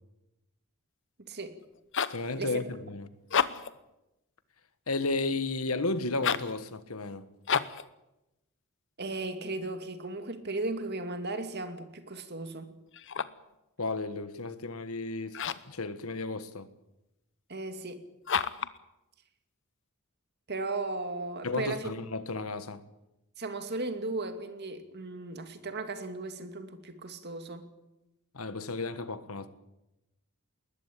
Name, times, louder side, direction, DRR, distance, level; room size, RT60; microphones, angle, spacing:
voice 1, 1.3-1.6 2.4-2.7 9.0-12.7 17.5-18.0 20.5-21.9 23.4-27.6, right 2 dB, 50° right, 2.4 m, -36 dB
sound 1, 1.6-2.3 3.2-3.8 6.1-6.6 7.4-7.9 12.9-13.5 15.3-15.8 18.2-18.8, left 7 dB, 60° left, 0.9 m, -30 dB
voice 2, 2.1-3.1 4.9-7.3 13.8-15.4 15.7-16.7 21.4-22.8 28.3-29.5, left 3 dB, 75° left, 1.5 m, -33 dB
20.5 x 20.0 x 8.6 m
head